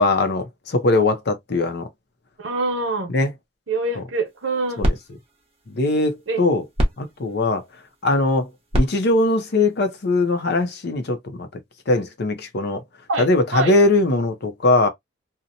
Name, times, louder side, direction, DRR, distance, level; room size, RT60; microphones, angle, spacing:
voice 1, 0.0-1.9 3.1-3.3 4.0-4.1 4.8-4.9 5.7-6.6 7.0-7.6 8.0-8.5 8.7-11.5 11.9-12.8 13.2-14.9, left 2 dB, 60° left, 0.6 m, -20 dB
voice 2, 2.4-3.1 3.7-4.8 6.3-6.4 13.1-13.2 13.5-13.7, right 2 dB, 80° right, 0.9 m, -24 dB
sound 1, 4.2-10.7, equal, 30° right, 0.9 m, -29 dB
2.8 x 2.1 x 2.5 m
head